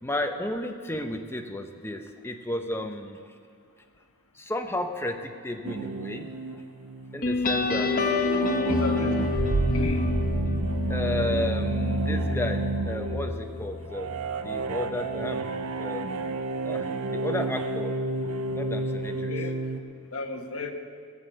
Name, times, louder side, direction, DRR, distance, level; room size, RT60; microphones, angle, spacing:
voice 1, 0.0-3.2 4.3-6.3 7.1-7.9 10.9-14.1 14.4-15.4 15.8-16.3 16.6-17.9 18.5-19.3, left 1 dB, 10° left, 5 dB, 0.8 m, -33 dB
sound 1, 5.6-19.8, right 3 dB, 80° right, 0.7 m, -32 dB
sound 2, 7.2-14.4, left 2 dB, 40° left, 0.9 m, -28 dB
voice 2, 8.6-9.4 9.7-10.1 18.5-18.6 19.1-19.6 20.1-20.7, left 2 dB, 70° left, 5 dB, 1.2 m, -34 dB
sound 3, 9.3-12.0 12.3-12.4, right 3 dB, 45° right, 0.5 m, -31 dB
17.5 x 6.9 x 7.9 m, 2.2 s
head